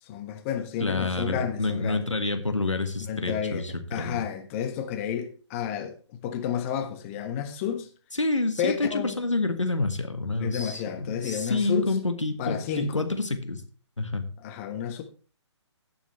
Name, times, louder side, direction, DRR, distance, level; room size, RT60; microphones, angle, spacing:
voice 1, 0.0-2.0 3.0-3.6 3.9-7.9 8.6-9.2 10.4-12.0 12.4-13.1 14.4-15.0, left 9 dB, 30° left, 1.4 m, -31 dB
voice 2, 0.8-4.2 8.2-10.8 11.2-13.6 14.0-14.2, left 2 dB, 90° left, 1.7 m, -28 dB
17.5 x 7.2 x 3.2 m
figure-of-eight pair, 135°, 15 cm